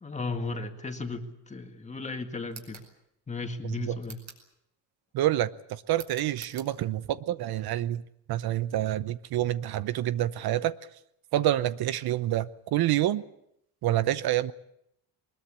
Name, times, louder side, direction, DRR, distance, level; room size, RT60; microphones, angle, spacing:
voice 1, 0.0-2.8 3.3-4.2, left 3 dB, 15° left, 2.1 m, -35 dB
sound 1, 2.5-2.9 4.0-4.5 5.9-6.7, right 5 dB, 40° right, 5.3 m, -47 dB
voice 2, 5.1-8.0 8.3-10.8 11.3-13.2 13.8-14.5, right 13 dB, 60° right, 0.9 m, -27 dB
22.5 x 21.0 x 8.6 m
cardioid pair, 160°, 41 cm